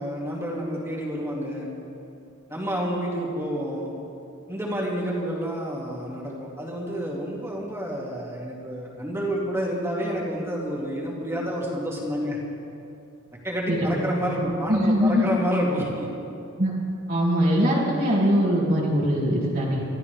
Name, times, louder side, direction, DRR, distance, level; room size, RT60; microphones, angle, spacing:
voice 1, 0.0-1.7 2.5-3.9 4.5-12.4 13.4-16.1, equal, 10° right, -4 dB, 2.4 m, -29 dB
voice 2, 14.4-15.3 16.6-16.7 17.1-19.8, equal, 50° right, -7 dB, 2.5 m, -22 dB
25.0 x 14.0 x 3.5 m, 2.7 s
head